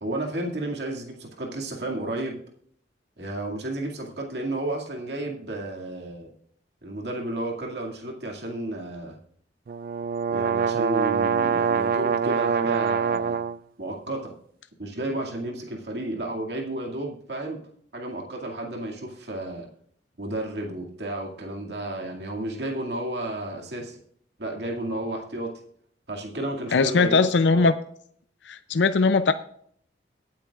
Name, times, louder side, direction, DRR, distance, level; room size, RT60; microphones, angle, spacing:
voice 1, 0.0-2.4 3.2-6.3 6.8-9.2 10.3-13.4 13.8-14.3 14.8-17.6 17.9-19.7 20.2-24.0 24.4-25.5 26.1-27.7, right 1 dB, 70° right, 0 dB, 2.2 m, -32 dB
sound 1, 9.7-13.6, right 6 dB, 50° right, 0.3 m, -24 dB
voice 2, 26.7-27.7 28.5-29.3, left 4 dB, 85° left, 11 dB, 0.5 m, -20 dB
23.0 x 8.8 x 2.4 m, 0.63 s
head